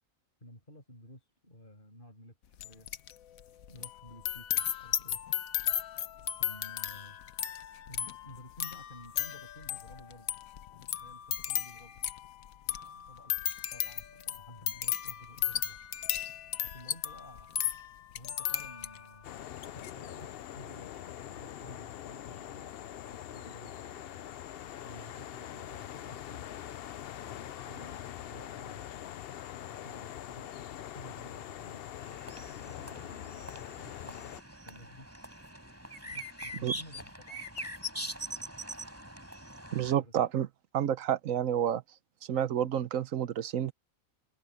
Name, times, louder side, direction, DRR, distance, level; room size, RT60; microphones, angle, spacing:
voice 1, 0.4-2.9 3.4-5.2 6.4-7.2 7.9-10.3 10.7-12.0 12.8-13.4 13.7-15.8 16.6-17.5 18.1-19.3 19.7-20.9 21.3-22.7 23.0-24.3 24.8-26.7 27.2-28.8 29.6-31.8 32.6-34.3 34.7-35.1 36.0-37.5 39.8-40.1, left 1 dB, 35° left, 6.6 m, -53 dB
sound 1, 2.6-3.1 3.4-19.1 19.6-19.9, left 10 dB, 80° left, 1.3 m, -35 dB
sound 2, 19.2-34.4, left 11 dB, 60° left, 0.7 m, -43 dB
sound 3, 32.0-39.9, equal, 10° right, 4.0 m, -42 dB
voice 2, 39.7-40.5 40.7-41.8 42.3-43.7, right 10 dB, 75° right, 1.2 m, -29 dB
omnidirectional pair, 1.4 m